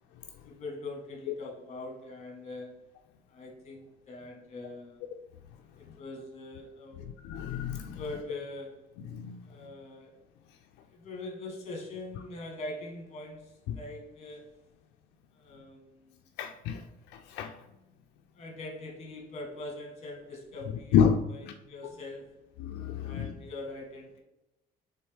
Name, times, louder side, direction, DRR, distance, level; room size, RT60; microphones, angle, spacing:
voice 1, 0.4-2.8 3.3-5.0 5.8-7.1 7.9-8.8 9.4-10.2 10.9-14.5 15.3-16.2 18.3-22.4 23.0-24.2, left 2 dB, 40° left, 1.5 m, -42 dB
voice 2, 7.2-8.0 9.1-9.4 13.7-13.8 16.4-16.8 17.3-17.5 20.9-21.1 22.6-23.3, left 8 dB, 85° left, 0.4 m, -28 dB
4.2 x 3.5 x 3.5 m
cardioid pair, 110°, 17 cm